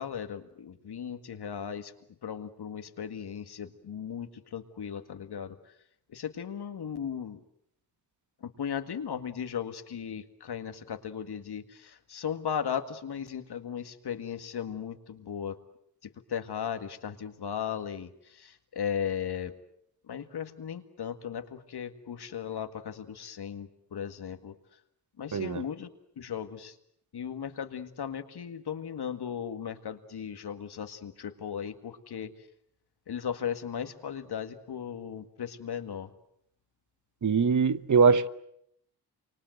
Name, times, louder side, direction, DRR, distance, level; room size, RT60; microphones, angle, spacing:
voice 1, 0.0-1.9 2.2-5.7 6.1-7.4 8.4-15.6 16.3-19.5 20.0-24.6 25.2-25.9 26.2-26.8 27.1-32.3 33.1-36.1, left 8 dB, 80° left, 2.0 m, -36 dB
voice 2, 25.3-25.6 37.2-38.3, right 5 dB, 50° right, 1.1 m, -22 dB
28.5 x 25.0 x 7.9 m
cardioid pair, 80°, 39 cm